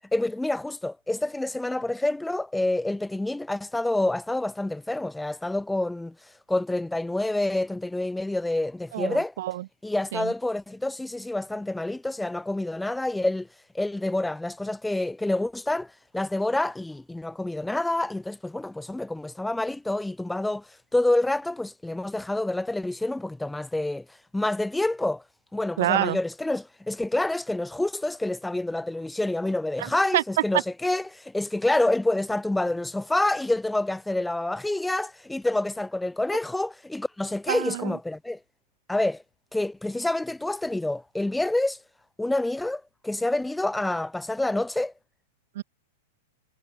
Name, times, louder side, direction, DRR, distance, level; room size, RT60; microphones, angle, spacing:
voice 1, 0.1-6.2 6.5-9.3 9.8-13.5 13.7-24.1 24.3-25.2 25.5-38.4 38.9-39.2 39.5-41.8 42.2-44.9, left 2 dB, 5° left, 3.9 m, -27 dB
voice 2, 8.9-9.6 10.1-10.3 25.8-26.2 29.8-30.2 30.5-30.6 37.5-38.0 45.5-45.6, right 14 dB, 55° right, 3.0 m, -27 dB
figure-of-eight pair, 95°, 0 cm